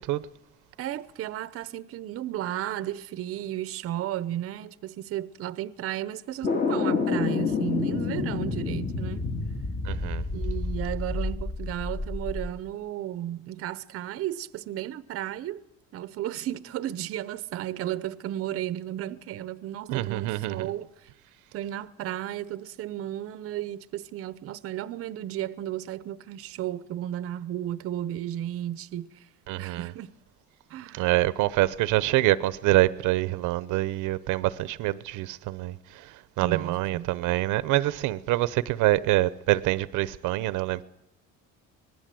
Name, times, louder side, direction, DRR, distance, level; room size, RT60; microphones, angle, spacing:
voice 1, 0.8-9.2 10.3-15.6 15.9-21.1 21.5-29.3 29.6-30.1 30.7-31.1 36.4-37.1, right 12 dB, 50° right, 0.8 m, -34 dB
sound 1, 6.4-12.5, left 4 dB, 30° left, 2.1 m, -29 dB
voice 2, 9.9-10.2 19.9-20.7 29.5-29.9 30.9-35.7 36.4-40.8, right 17 dB, 80° right, 0.9 m, -25 dB
25.5 x 20.0 x 7.7 m
cardioid pair, 170°, 30 cm